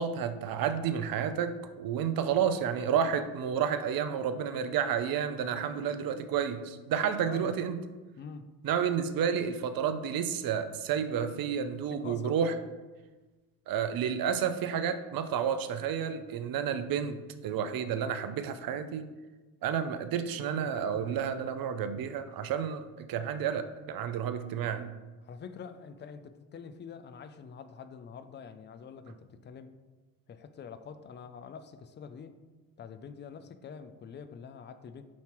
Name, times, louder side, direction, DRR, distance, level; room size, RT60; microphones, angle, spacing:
voice 1, 0.0-7.8 8.6-12.5 13.7-19.1 19.6-24.9, right 8 dB, 50° right, 10 dB, 0.6 m, -31 dB
voice 2, 8.2-8.5 11.9-12.4 25.2-29.8 30.3-32.4 32.8-35.0, left 6 dB, 25° left, 11 dB, 0.4 m, -46 dB
7.2 x 2.9 x 4.5 m, 1.2 s
supercardioid pair, 80°, 44 cm